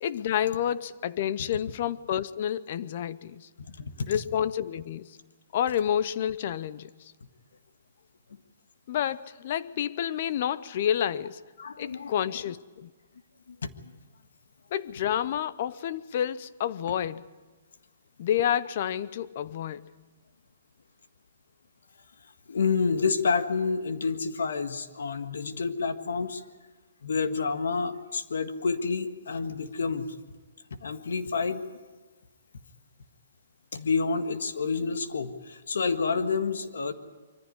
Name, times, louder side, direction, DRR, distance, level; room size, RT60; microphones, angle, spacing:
voice 1, 0.0-3.5 4.1-5.2 5.5-7.1 8.9-11.4 11.8-12.9 14.7-17.2 18.2-19.9, left 10 dB, 45° left, 0.7 m, -29 dB
voice 2, 3.8-4.1 11.6-12.1 13.5-13.7 22.5-26.4 27.0-30.1 30.7-31.6 33.7-36.9, left 5 dB, 80° left, 1.7 m, -29 dB
23.5 x 15.0 x 9.7 m
hypercardioid pair, 160°, 0 cm